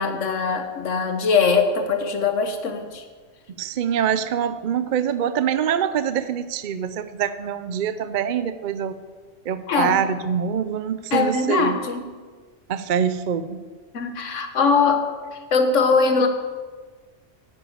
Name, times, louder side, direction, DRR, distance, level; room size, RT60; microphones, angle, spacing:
voice 1, 0.0-3.0 9.7-10.0 11.1-12.1 13.9-15.1 15.5-16.3, left 4 dB, 80° left, 6 dB, 1.4 m, -21 dB
voice 2, 3.6-9.0 9.5-11.8 12.7-13.6, right 8 dB, 55° right, 12 dB, 0.6 m, -24 dB
10.0 x 7.1 x 8.6 m, 1.5 s
omnidirectional pair, 1.3 m